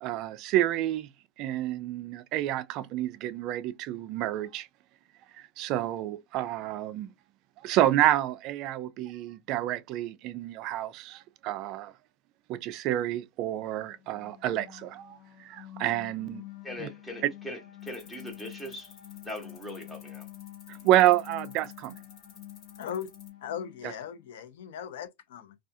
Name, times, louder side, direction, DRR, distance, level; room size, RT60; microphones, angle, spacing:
voice 1, 0.0-1.1 1.4-4.7 5.4-7.1 7.6-11.9 12.5-16.4 16.8-16.9 20.7-22.0, right 13 dB, 40° right, 0.3 m, -29 dB
sound 1, 13.8-24.3, left 14 dB, 50° left, 0.9 m, -48 dB
voice 2, 16.6-19.0 19.2-20.2, left 1 dB, 5° left, 0.9 m, -40 dB
sound 2, 17.8-23.3, left 6 dB, 35° left, 1.4 m, -54 dB
voice 3, 22.8-23.1 23.4-25.5, left 9 dB, 75° left, 0.6 m, -38 dB
2.4 x 2.3 x 2.6 m
supercardioid pair, 160°, 0 cm